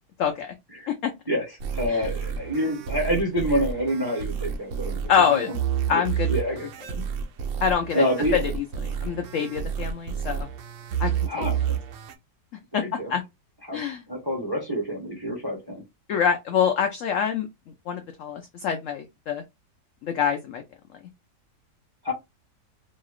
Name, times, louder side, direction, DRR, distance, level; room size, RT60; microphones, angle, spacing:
voice 1, 0.2-0.5 1.9-2.1 5.1-5.5 5.9-6.4 7.0-7.1 7.6-8.0 8.3-8.4 9.0-10.5 11.0-11.5 12.7-12.8 13.1-13.2 13.7-14.0 16.1-17.5 17.9-19.4 20.0-20.6, left 7 dB, 80° left, 0.7 m, -25 dB
voice 2, 1.3-5.6 5.9-6.7 7.9-8.5 11.2-11.7 12.7-13.1 13.6-13.8 14.1-15.8 22.0-22.1, equal, 20° right, 0.6 m, -27 dB
sound 1, 1.6-12.1, right 8 dB, 75° right, 0.7 m, -30 dB
3.0 x 2.7 x 2.3 m
omnidirectional pair, 1.9 m